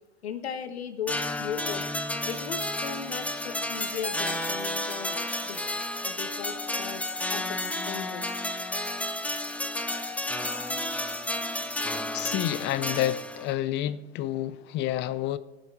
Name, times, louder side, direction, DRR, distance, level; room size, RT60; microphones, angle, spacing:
voice 1, 0.2-1.9 2.3-5.6 6.0-7.0 7.3-8.2, left 7 dB, 80° left, 1.3 m, -37 dB
sound 1, 1.1-13.5, left 1 dB, 5° left, 0.8 m, -31 dB
voice 2, 12.1-15.4, left 13 dB, 35° left, 0.6 m, -29 dB
17.0 x 7.9 x 4.6 m
hypercardioid pair, 105°, 31 cm